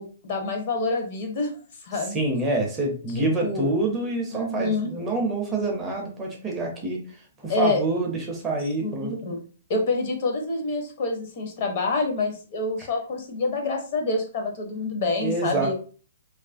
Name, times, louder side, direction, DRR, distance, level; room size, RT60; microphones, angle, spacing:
voice 1, 0.0-1.5 1.8-2.2 3.2-3.7 4.3-4.9 7.5-7.8 8.8-9.4 9.7-15.7, left 3 dB, 40° left, 3 dB, 0.6 m, -27 dB
voice 2, 2.1-7.2 7.4-9.1 12.8-12.9 15.2-15.7, right 2 dB, 15° right, 0 dB, 0.4 m, -27 dB
2.6 x 2.4 x 2.4 m, 0.39 s
hypercardioid pair, 165°, 0 cm